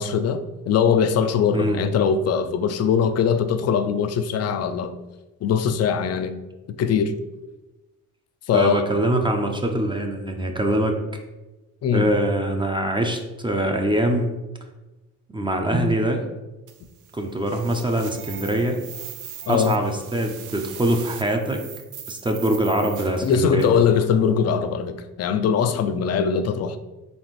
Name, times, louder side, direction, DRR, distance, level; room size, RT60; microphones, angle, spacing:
voice 1, 0.0-4.9 5.4-6.3 6.8-7.2 8.5-8.8 11.8-12.1 19.5-19.8 23.2-26.8, left 7 dB, 55° left, 10 dB, 0.4 m, -21 dB
voice 2, 8.5-11.0 11.9-14.3 15.3-16.2 17.1-18.8 19.5-21.6 22.1-23.7, right 1 dB, 15° right, 3 dB, 0.5 m, -23 dB
sound 1, 16.7-23.9, right 9 dB, 80° right, 0.5 m, -40 dB
4.2 x 3.3 x 3.1 m, 1.1 s
cardioid pair, 90°, 30 cm